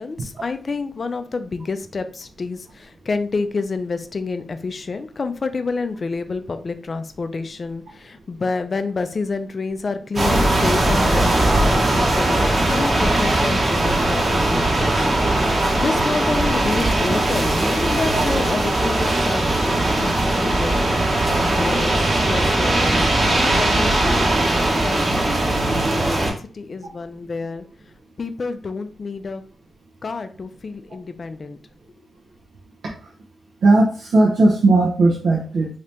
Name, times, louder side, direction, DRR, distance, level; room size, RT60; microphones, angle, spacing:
voice 1, 0.0-15.1 15.4-24.3 24.8-27.6 28.2-29.4 30.0-31.6, left 4 dB, 45° left, 9 dB, 0.4 m, -29 dB
sound 1, 10.2-26.3, right 1 dB, 40° right, 1.0 m, -19 dB
sound 2, 10.5-16.7, right 1 dB, 20° right, 0.5 m, -35 dB
voice 2, 33.6-35.7, right 2 dB, 80° right, -4 dB, 0.7 m, -17 dB
2.8 x 2.8 x 3.3 m, 0.41 s
cardioid pair, 75°, 0 cm